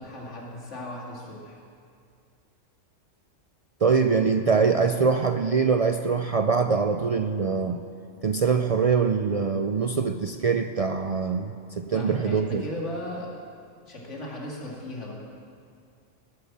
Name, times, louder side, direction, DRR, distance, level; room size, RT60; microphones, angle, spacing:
voice 1, 0.0-1.6 11.9-13.3 13.9-15.1, left 1 dB, 70° left, -3 dB, 2.7 m, -37 dB
voice 2, 3.8-7.8 8.2-12.6, right 5 dB, 70° right, 7 dB, 0.3 m, -23 dB
18.5 x 8.0 x 7.4 m, 2.3 s
omnidirectional pair, 1.3 m